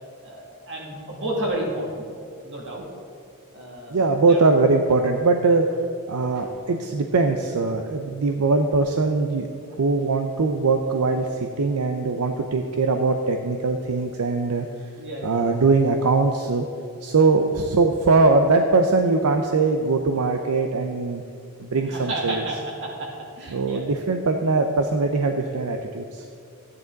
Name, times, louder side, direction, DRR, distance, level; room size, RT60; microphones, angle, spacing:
voice 1, 0.2-2.0 2.4-2.8 3.5-4.4 6.3-6.5 15.0-15.5 21.9-23.8, right 1 dB, 55° right, -2 dB, 2.6 m, -31 dB
voice 2, 3.9-5.6 6.1-9.5 9.8-14.7 15.2-16.6 17.0-21.2 21.6-22.4 23.5-26.3, right 3 dB, 80° right, 5 dB, 0.6 m, -21 dB
13.5 x 9.8 x 4.0 m, 2.6 s
head